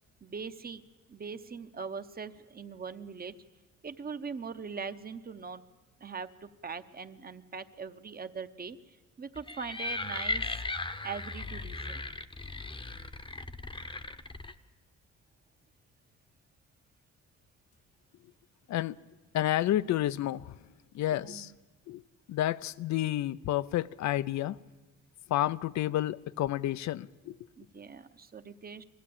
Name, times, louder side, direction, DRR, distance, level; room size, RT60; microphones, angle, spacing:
voice 1, 0.2-0.8 1.1-3.3 3.8-5.6 6.0-10.8 11.0-12.0 21.2-21.5 27.6-28.8, right 5 dB, 30° right, 0.9 m, -41 dB
sound 1, 9.4-14.5, left 3 dB, 15° left, 0.9 m, -37 dB
voice 2, 19.3-20.5 20.9-21.5 21.9-22.0 22.3-24.6 25.3-27.3, left 13 dB, 65° left, 0.6 m, -30 dB
21.0 x 15.0 x 8.5 m
cardioid pair, 90°, 30 cm